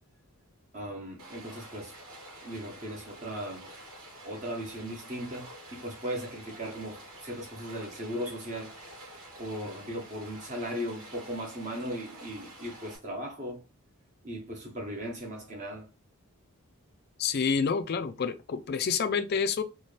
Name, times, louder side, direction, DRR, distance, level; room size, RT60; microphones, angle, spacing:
voice 1, 0.7-1.9 2.4-3.7 4.2-8.8 9.4-13.6 14.2-15.9, equal, 35° right, 0.8 m, -37 dB
Stream, 1.2-13.0, right 1 dB, 65° right, 2.1 m, -48 dB
voice 2, 17.2-19.6, left 6 dB, 45° left, 0.4 m, -28 dB
4.2 x 2.2 x 3.2 m
head